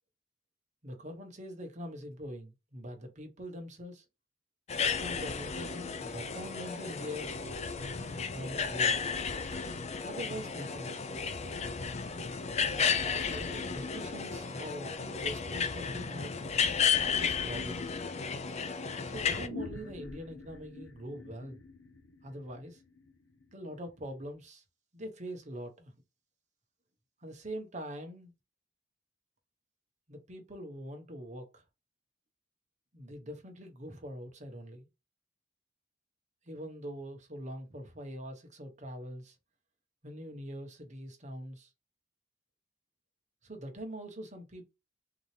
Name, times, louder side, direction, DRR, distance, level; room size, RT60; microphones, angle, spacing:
voice 1, 0.8-4.0 4.9-7.5 7.9-9.1 10.0-11.0 13.1-16.6 16.8-18.0 19.1-21.6 22.2-22.8 23.5-24.6 24.9-25.9 27.2-28.3 30.1-31.6 32.9-34.9 36.4-39.3 40.0-41.7 43.4-44.7, equal, 40° right, 1.1 m, -43 dB
sound 1, 4.7-19.5, left 6 dB, 35° left, 0.4 m, -33 dB
sound 2, 19.3-24.2, left 3 dB, 70° left, 0.8 m, -47 dB
3.9 x 2.8 x 3.3 m
head